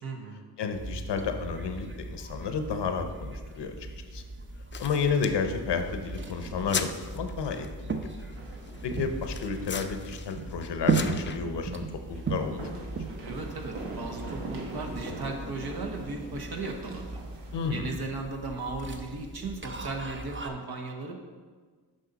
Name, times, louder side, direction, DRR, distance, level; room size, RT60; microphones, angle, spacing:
voice 1, 0.0-0.4 13.2-17.2 17.7-21.1, right 3 dB, 60° right, 2 dB, 1.2 m, -36 dB
voice 2, 0.6-3.7 4.1-4.2 4.8-8.0 8.8-12.9 17.5-18.0, left 5 dB, 80° left, 7 dB, 0.8 m, -31 dB
sound 1, 0.7-20.5, right 4 dB, 30° right, 0.8 m, -37 dB
sound 2, 4.7-11.4, left 6 dB, 30° left, 0.5 m, -40 dB
sound 3, 8.3-9.9 10.2-10.3 11.6-17.7, right 2 dB, 85° right, 1.2 m, -43 dB
7.6 x 5.5 x 4.0 m, 1.5 s
cardioid pair, 50°, 41 cm